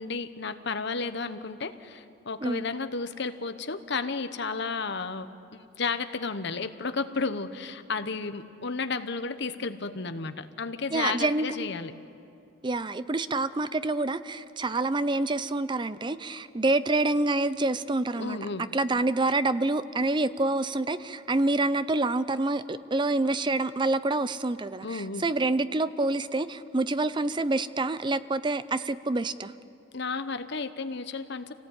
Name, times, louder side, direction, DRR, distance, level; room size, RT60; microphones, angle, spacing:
voice 1, 0.0-11.9 18.2-18.7 24.8-25.3 29.9-31.5, left 4 dB, 55° left, 10 dB, 1.0 m, -33 dB
voice 2, 10.9-11.7 12.6-18.4 18.7-29.5, right 2 dB, 25° right, 14 dB, 0.5 m, -27 dB
27.0 x 18.0 x 8.8 m, 2.7 s
head